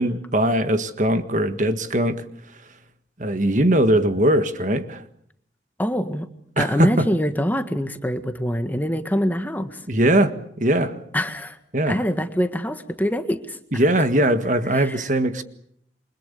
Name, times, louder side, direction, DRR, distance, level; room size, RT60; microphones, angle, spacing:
voice 1, 0.0-2.2 3.2-5.0 6.6-7.1 9.9-10.3 10.6-11.0 11.7-12.0 13.7-15.4, right 1 dB, 40° right, 1.7 m, -20 dB
voice 2, 5.8-6.3 6.6-9.8 11.1-11.6 11.9-13.8 14.7-15.1, equal, 10° left, 1.6 m, -25 dB
28.5 x 25.0 x 6.9 m
head